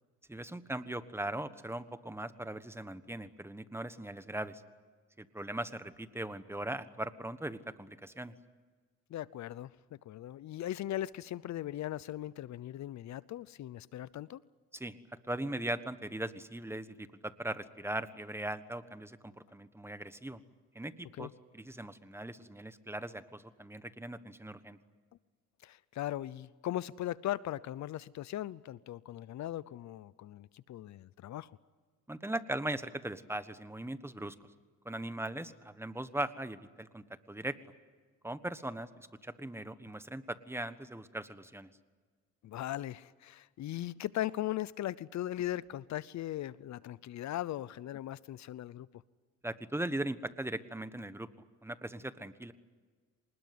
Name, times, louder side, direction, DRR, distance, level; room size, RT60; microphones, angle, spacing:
voice 1, 0.3-4.6 5.2-8.3 14.7-15.0 15.3-20.4 20.7-24.8 32.1-34.3 34.8-37.6 38.2-38.9 39.2-41.7 49.4-51.3 51.6-52.5, right 1 dB, 10° right, 12 dB, 1.3 m, -39 dB
voice 2, 9.1-14.4 21.1-21.3 25.6-31.5 42.4-48.9, left 13 dB, 65° left, 20 dB, 0.7 m, -39 dB
26.0 x 20.0 x 9.5 m, 1.5 s
cardioid pair, 90°, 30 cm